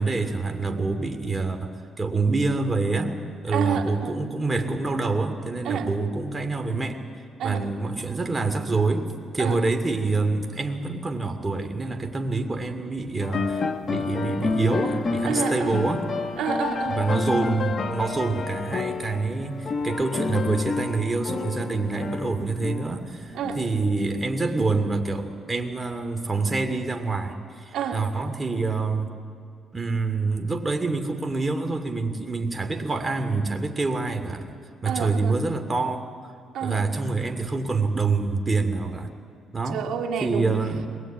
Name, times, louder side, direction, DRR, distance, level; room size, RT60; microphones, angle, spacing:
voice 1, 0.0-3.2 3.4-7.0 7.4-9.1 9.3-13.6 13.9-16.1 16.9-29.1 29.7-34.4 34.8-36.1 36.6-39.1 39.5-39.8 40.2-40.9, right 3 dB, 20° right, 6 dB, 2.5 m, -26 dB
voice 2, 3.5-4.2 5.6-5.9 7.4-7.6 9.4-9.6 15.3-15.8 16.4-17.0 23.4-23.6 27.7-28.0 34.9-35.4 36.5-36.8 39.7-40.5, right 7 dB, 75° right, 4 dB, 1.9 m, -29 dB
sound 1, 13.2-24.5, left 4 dB, 45° left, 1.3 m, -30 dB
21.5 x 20.5 x 8.9 m, 2.2 s
cardioid pair, 90°, 0 cm